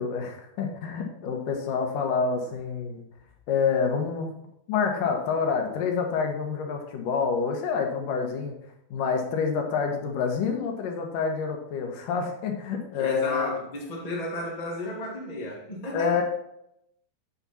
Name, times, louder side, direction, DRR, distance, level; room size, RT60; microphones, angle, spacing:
voice 1, 0.0-3.0 3.5-4.3 4.7-8.5 8.9-13.5 15.9-16.2, left 5 dB, 70° left, 2.7 m, -27 dB
voice 2, 13.0-16.1, left 1 dB, 25° left, 0.7 m, -33 dB
8.9 x 7.1 x 4.1 m
omnidirectional pair, 4.2 m